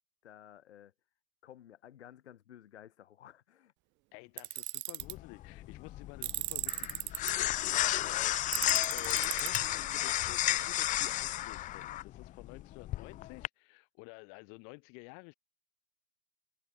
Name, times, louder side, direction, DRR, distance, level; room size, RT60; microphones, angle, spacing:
voice 1, 0.2-0.9 1.4-3.7, left 11 dB, 75° left, 6.9 m, -54 dB
voice 2, 4.1-15.3, left 40 dB or more, 45° left, 2.6 m, -51 dB
Tools, 4.4-5.1 6.2-7.3 8.5-9.6, right 22 dB, 35° right, 1.3 m, -36 dB
sound 1, 5.0-13.5, left 14 dB, 25° left, 0.7 m, -33 dB
hypercardioid pair, 130°, 33 cm